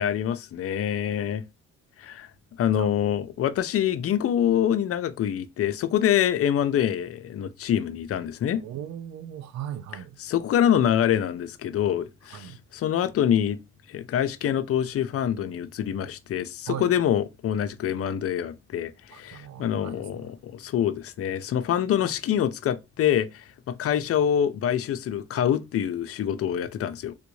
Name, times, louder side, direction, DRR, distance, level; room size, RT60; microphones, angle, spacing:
voice 1, 0.0-1.4 2.0-2.3 2.6-8.6 10.2-13.6 13.9-27.1, left 10 dB, 50° left, 0.5 m, -25 dB
voice 2, 8.6-10.2 12.3-12.6 16.7-16.9 19.1-20.3, right 10 dB, 65° right, 0.5 m, -38 dB
3.4 x 2.5 x 3.0 m
cardioid pair, 90°, 30 cm